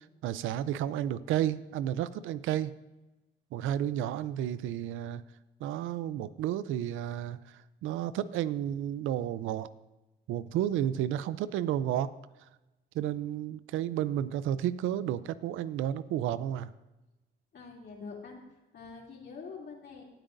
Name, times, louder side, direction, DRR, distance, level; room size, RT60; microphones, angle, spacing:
voice 1, 0.2-2.7 3.5-5.2 5.6-9.7 10.3-12.1 12.9-16.7, right 11 dB, 90° right, 16 dB, 0.5 m, -32 dB
voice 2, 17.5-18.4 18.7-20.0, left 5 dB, 60° left, -1 dB, 2.8 m, -45 dB
18.0 x 8.9 x 2.6 m, 1.0 s
cardioid pair, 90°, 20 cm